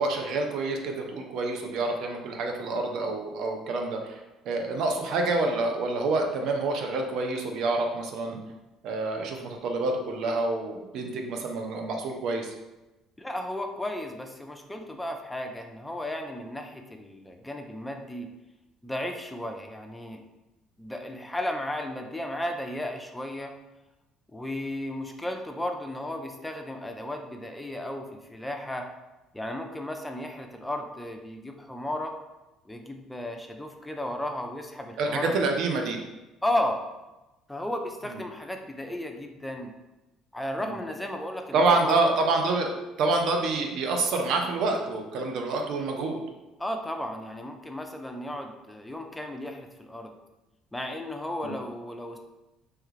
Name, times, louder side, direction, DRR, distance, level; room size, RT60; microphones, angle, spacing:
voice 1, 0.0-4.2 4.5-8.4 8.8-12.5 35.0-36.0 41.5-46.2 51.4-51.5, right 3 dB, 65° right, 3 dB, 0.5 m, -27 dB
voice 2, 13.2-18.3 18.8-20.2 20.8-23.5 24.3-28.9 29.3-32.1 32.7-35.4 36.4-36.8 37.5-39.7 40.3-42.2 46.6-50.1 50.7-52.2, left 1 dB, 10° left, 4 dB, 0.5 m, -34 dB
3.2 x 2.3 x 3.1 m, 1.0 s
hypercardioid pair, 65°, 0 cm